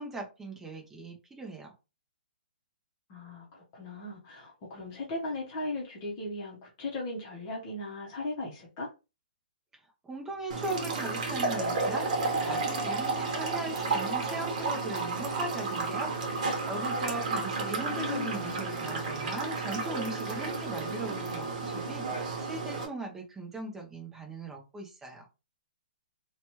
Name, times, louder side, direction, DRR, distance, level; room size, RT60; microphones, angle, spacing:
voice 1, 0.0-1.7 10.0-25.2, right 2 dB, 5° right, 1 dB, 0.6 m, -39 dB
voice 2, 3.1-8.9 17.4-18.6, left 2 dB, 30° left, -4 dB, 0.8 m, -38 dB
sound 1, 10.5-22.9, right 3 dB, 45° right, 1.1 m, -32 dB
2.8 x 2.2 x 3.0 m, 0.29 s
hypercardioid pair, 165°, 5 cm